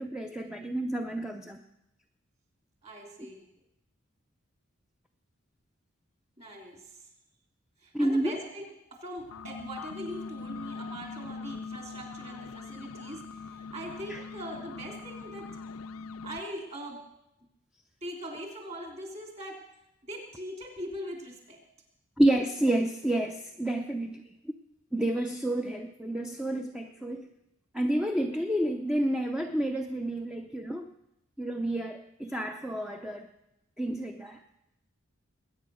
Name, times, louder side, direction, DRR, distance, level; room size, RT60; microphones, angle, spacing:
voice 1, 0.0-1.6 7.9-8.4 14.1-14.2 22.2-24.5 24.9-27.3 27.7-30.9 31.4-33.3 33.8-34.4, right 1 dB, 5° right, 4 dB, 0.6 m, -29 dB
voice 2, 2.8-3.5 6.4-7.1 7.8-8.6 8.9-15.5 16.2-17.0 18.0-19.6 20.0-21.6, equal, 30° right, 2 dB, 3.2 m, -41 dB
sound 1, 9.2-16.4, left 4 dB, 85° left, 0.6 m, -42 dB
21.0 x 9.3 x 6.3 m, 0.85 s
head